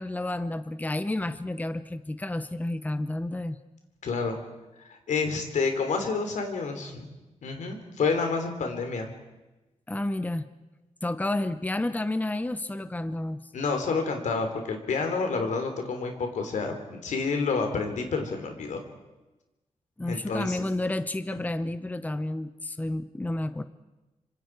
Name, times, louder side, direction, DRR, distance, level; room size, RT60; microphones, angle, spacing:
voice 1, 0.0-3.6 9.9-10.5 11.0-13.5 20.0-23.6, left 1 dB, 15° left, 12 dB, 0.9 m, -30 dB
voice 2, 4.0-4.4 4.9-7.1 7.4-9.1 13.5-18.8 20.1-20.6 21.3-21.4, left 4 dB, 90° left, 5 dB, 3.4 m, -29 dB
26.5 x 25.5 x 4.8 m, 1.1 s
cardioid pair, 95°, 12 cm